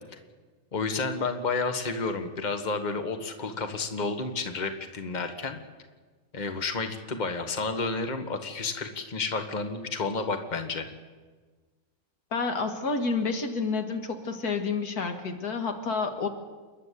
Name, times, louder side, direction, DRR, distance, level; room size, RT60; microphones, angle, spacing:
voice 1, 0.7-5.6 6.3-10.9, left 4 dB, 30° left, 7 dB, 1.5 m, -31 dB
voice 2, 12.3-16.3, left 4 dB, 85° left, 6 dB, 2.2 m, -29 dB
28.5 x 11.0 x 8.3 m, 1.4 s
omnidirectional pair, 1.6 m